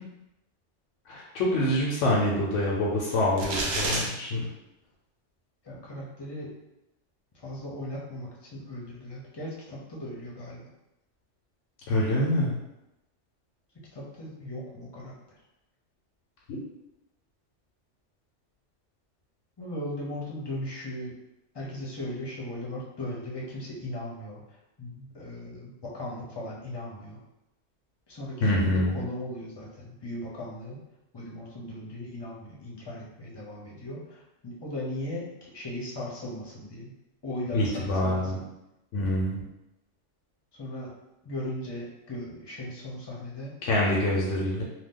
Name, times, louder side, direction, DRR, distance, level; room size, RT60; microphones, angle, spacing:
voice 1, 1.1-4.5 11.9-12.6 16.5-16.6 28.4-29.0 37.5-38.4 38.9-39.4 43.6-44.6, left 1 dB, 90° left, -4 dB, 1.0 m, -26 dB
sound 1, 3.4-4.1, right 2 dB, 70° right, 0.9 m, -28 dB
voice 2, 5.6-6.5 7.3-10.6 13.9-15.4 19.6-21.1 21.5-27.2 28.1-30.8 31.1-36.9 37.2-38.4 40.5-40.9 41.2-43.6 44.1-44.4, left 1 dB, 25° left, -4 dB, 0.6 m, -38 dB
2.7 x 2.2 x 3.6 m, 0.91 s
omnidirectional pair, 1.2 m